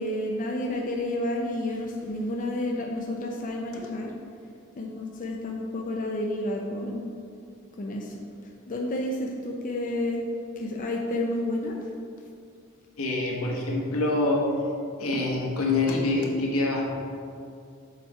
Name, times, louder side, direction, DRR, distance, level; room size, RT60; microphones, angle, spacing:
voice 1, 0.0-4.1 4.8-7.1 7.8-8.2 8.7-10.3 10.6-11.8, left 1 dB, 40° left, 0 dB, 0.5 m, -30 dB
voice 2, 13.0-14.5 15.0-16.9, left 2 dB, 80° left, -2 dB, 1.2 m, -25 dB
7.2 x 4.6 x 4.2 m, 2.4 s
head